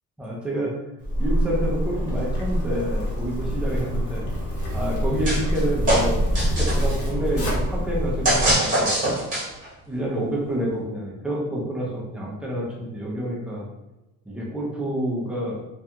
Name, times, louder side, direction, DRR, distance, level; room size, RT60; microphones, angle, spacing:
voice 1, 0.2-0.7 1.2-4.2 4.7-8.9 9.9-13.6 14.3-15.6, right 1 dB, 5° right, -4 dB, 0.4 m, -28 dB
Zipper (clothing), 1.0-8.5, equal, 45° left, 0.8 m, -25 dB
sound 1, 5.2-5.6 5.9-6.9 8.2-9.7, right 1 dB, 25° right, 0.8 m, -22 dB
2.4 x 2.3 x 2.7 m, 0.99 s
cardioid pair, 170°, 33 cm